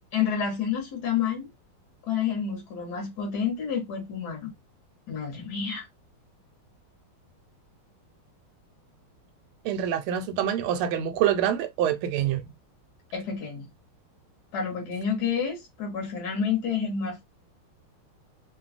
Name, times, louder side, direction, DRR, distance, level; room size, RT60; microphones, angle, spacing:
voice 1, 0.1-1.5 2.0-4.5 5.1-5.9 13.1-13.7 14.5-17.2, left 7 dB, 60° left, 1.2 m, -29 dB
voice 2, 9.6-12.5, right 10 dB, 85° right, 1.4 m, -26 dB
3.3 x 2.2 x 2.4 m
omnidirectional pair, 2.3 m